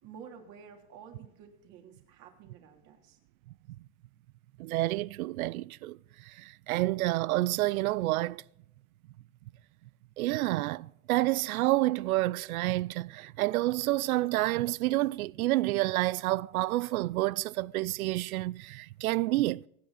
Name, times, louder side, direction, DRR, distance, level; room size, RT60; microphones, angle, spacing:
voice 1, 0.0-3.2, right 7 dB, 45° right, 3.2 m, -51 dB
voice 2, 4.6-6.0 6.3-8.4 10.2-19.6, right 17 dB, 85° right, 0.5 m, -29 dB
24.5 x 9.5 x 4.1 m
supercardioid pair, 140°, 42 cm